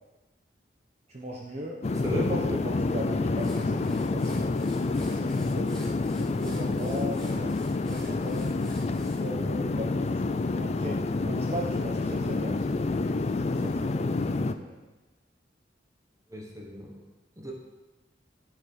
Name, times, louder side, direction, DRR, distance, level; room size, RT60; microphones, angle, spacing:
voice 1, 1.1-1.8 2.1-4.5 5.0-7.6 7.9-8.6 9.2-11.0 11.2-13.0 13.3-14.8, equal, 35° right, -2 dB, 1.0 m, -39 dB
sound 1, 1.8-14.5, left 3 dB, 35° left, 0.4 m, -28 dB
voice 2, 1.9-2.4 10.5-10.6 16.3-17.0 17.4-17.5, equal, 20° right, 0 dB, 1.2 m, -34 dB
sound 2, 3.4-9.2, equal, 5° left, 1.8 m, -50 dB
11.0 x 4.7 x 6.6 m, 1.1 s
head